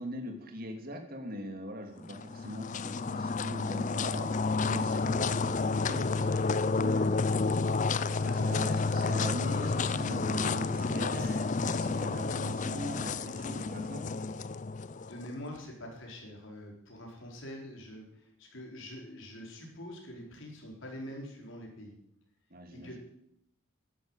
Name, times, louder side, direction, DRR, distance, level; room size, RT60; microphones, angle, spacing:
voice 1, 0.0-4.4 4.7-7.1 8.1-14.0 22.5-23.0, equal, 45° right, 5 dB, 2.4 m, -41 dB
sound 1, 2.0-15.3, left 4 dB, 35° left, 0.5 m, -30 dB
voice 2, 8.2-9.3 11.2-11.3 14.9-22.0 22.7-23.0, equal, 65° left, 0 dB, 4.5 m, -45 dB
12.5 x 10.5 x 8.9 m, 0.78 s
head